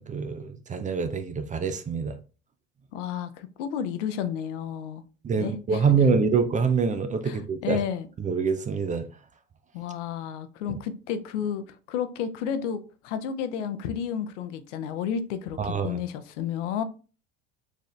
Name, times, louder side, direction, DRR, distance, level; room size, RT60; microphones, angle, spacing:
voice 1, 0.0-2.2 5.2-7.8 8.2-9.1 15.6-16.0, right 5 dB, 20° right, 0.4 m, -25 dB
voice 2, 2.9-5.0 5.4-6.0 7.2-8.1 9.7-16.8, left 8 dB, 75° left, 0.6 m, -32 dB
4.0 x 2.7 x 3.3 m
hypercardioid pair, 85°, 37 cm